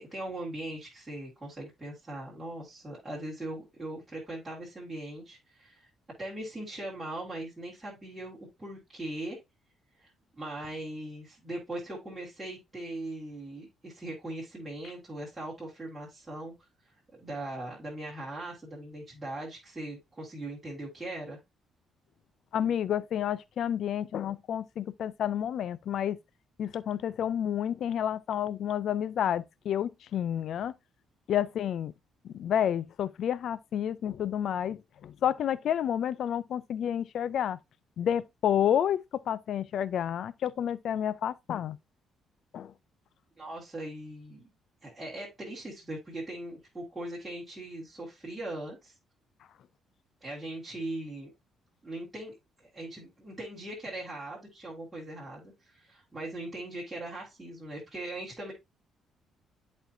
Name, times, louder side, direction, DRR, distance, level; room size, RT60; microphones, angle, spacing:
voice 1, 0.0-5.9 6.2-9.4 10.0-16.5 16.8-16.9 17.2-21.4 43.4-44.5 44.8-48.9 50.2-51.3 51.8-58.5, right 1 dB, 10° right, 2.0 m, -40 dB
voice 2, 22.5-26.2 26.6-30.7 31.3-31.9 32.2-37.6 38.0-41.8 42.5-42.7, left 9 dB, 50° left, 0.3 m, -30 dB
10.5 x 4.3 x 2.6 m
cardioid pair, 175°, 0 cm